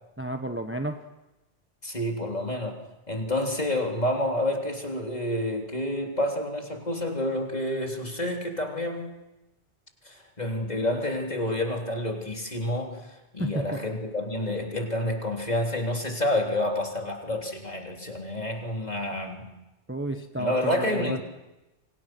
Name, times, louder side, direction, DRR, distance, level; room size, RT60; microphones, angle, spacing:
voice 1, 0.2-1.0 13.4-13.8 19.9-21.2, right 1 dB, 10° right, 6 dB, 1.2 m, -31 dB
voice 2, 1.8-2.8 3.1-9.1 10.1-13.1 13.3-19.5 20.4-21.2, left 1 dB, 35° left, 1 dB, 3.6 m, -29 dB
29.5 x 25.0 x 6.2 m, 1.0 s
omnidirectional pair, 1.2 m